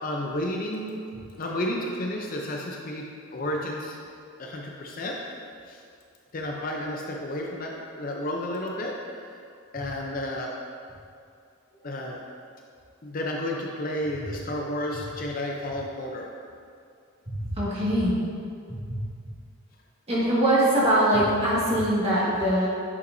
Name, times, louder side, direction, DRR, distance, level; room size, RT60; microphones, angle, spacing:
voice 1, 0.0-1.0 1.4-4.0 4.4-5.2 5.7-5.8 6.3-8.9 9.7-10.5 11.8-12.2 13.0-16.3, left 1 dB, 40° left, 0 dB, 0.5 m, -31 dB
voice 2, 17.3-18.2 18.7-19.0 20.1-22.7, right 1 dB, 30° right, -8 dB, 1.7 m, -23 dB
9.3 x 5.7 x 2.6 m, 2.3 s
head